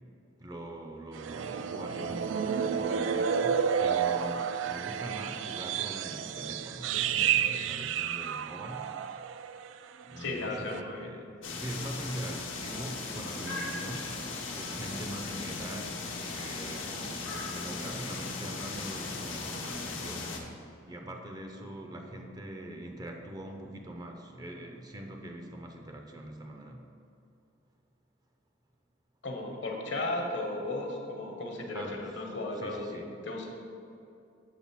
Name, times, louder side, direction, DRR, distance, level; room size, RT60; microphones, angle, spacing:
voice 1, 0.4-9.0 10.0-26.9 31.7-32.2 32.5-33.1, right 1 dB, 20° right, 3 dB, 0.5 m, -43 dB
sound 1, 1.1-9.7 10.0-10.3 10.7-10.8, right 7 dB, 80° right, 0.3 m, -31 dB
voice 2, 10.2-11.1 29.2-33.5, left 2 dB, 65° left, 1 dB, 1.1 m, -35 dB
sound 2, 11.4-20.4, left 3 dB, 90° left, 0.9 m, -37 dB
7.4 x 3.8 x 5.9 m, 2.5 s
head